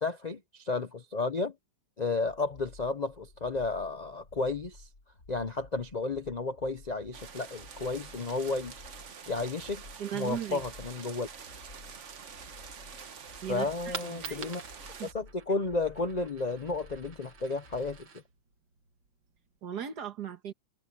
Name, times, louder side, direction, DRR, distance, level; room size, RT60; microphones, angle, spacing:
voice 1, 0.0-1.5 2.0-4.9 5.3-8.7 9.3-9.8 10.1-11.3 13.5-14.6 15.1-18.1, left 3 dB, 80° left, 0.3 m, -32 dB
sound 1, 2.3-18.1, left 2 dB, 45° left, 4.5 m, -54 dB
sound 2, 7.1-15.1, right 6 dB, 45° right, 1.3 m, -47 dB
voice 2, 10.0-10.6 13.4-14.5 15.0-15.1 19.6-20.5, right 9 dB, 60° right, 1.9 m, -37 dB
Coin (dropping), 13.9-19.6, right 6 dB, 80° right, 2.6 m, -47 dB
omnidirectional pair, 2.0 m